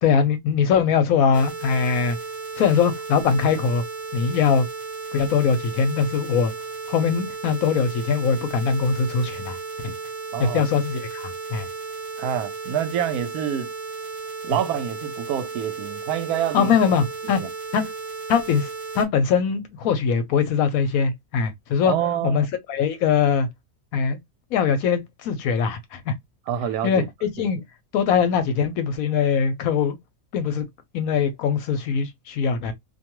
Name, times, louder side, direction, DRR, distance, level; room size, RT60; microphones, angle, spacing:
voice 1, 0.0-2.2 2.6-3.8 4.1-4.7 5.1-6.5 6.9-9.6 9.8-9.9 10.4-11.7 16.5-17.4 17.7-17.9 18.3-18.7 18.9-21.9 22.2-23.5 23.9-24.2 24.5-26.1 26.8-27.6 27.9-30.0 30.3-30.6 30.9-32.7, left 6 dB, 75° left, 1.0 m, -22 dB
sound 1, 1.3-19.1, right 4 dB, 65° right, 1.2 m, -34 dB
voice 2, 10.3-10.6 12.2-13.7 14.4-16.7 17.4-17.5 21.9-22.5 26.5-27.1 27.4-27.5, right 9 dB, 85° right, 1.1 m, -27 dB
2.5 x 2.2 x 2.9 m
omnidirectional pair, 1.6 m